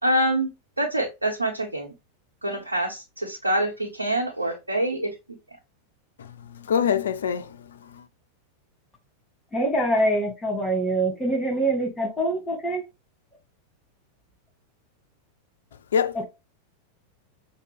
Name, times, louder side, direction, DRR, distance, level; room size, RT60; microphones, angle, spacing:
voice 1, 0.0-0.5 0.8-1.9 2.4-5.1, right 1 dB, 80° right, 0.9 m, -25 dB
voice 2, 6.2-8.0 15.9-16.2, left 7 dB, 65° left, 0.4 m, -26 dB
voice 3, 9.5-12.8 16.1-16.2, right 1 dB, 10° left, 1.8 m, -24 dB
6.4 x 2.3 x 3.5 m
figure-of-eight pair, 90°, 0 cm